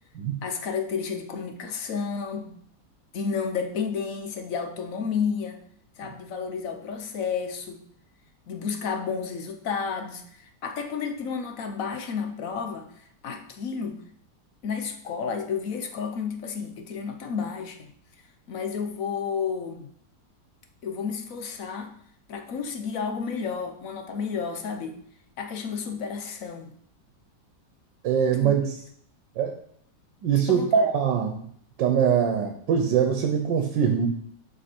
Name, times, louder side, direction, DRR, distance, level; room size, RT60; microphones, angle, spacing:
voice 1, 0.4-2.6 3.1-5.6 6.0-7.8 8.5-14.0 14.6-17.9 18.5-19.9 20.8-21.9 22.3-25.0 25.4-26.7 28.4-28.5 30.5-30.9, left 6 dB, 55° left, 6 dB, 1.1 m, -31 dB
voice 2, 28.0-28.7 29.4-29.5 30.2-31.3 31.8-34.1, right 7 dB, 90° right, 4 dB, 1.5 m, -22 dB
7.8 x 5.1 x 4.4 m, 0.64 s
omnidirectional pair, 1.9 m